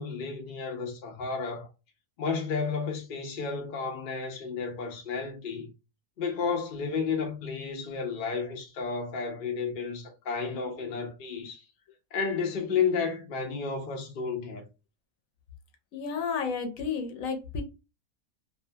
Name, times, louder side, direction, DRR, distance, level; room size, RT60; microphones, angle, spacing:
voice 1, 0.0-1.7 2.2-5.7 6.2-11.6 12.1-14.6, left 5 dB, 85° left, 0.4 m, -32 dB
voice 2, 15.9-17.6, left 5 dB, 65° left, 0.9 m, -32 dB
2.6 x 2.2 x 2.7 m
omnidirectional pair, 1.7 m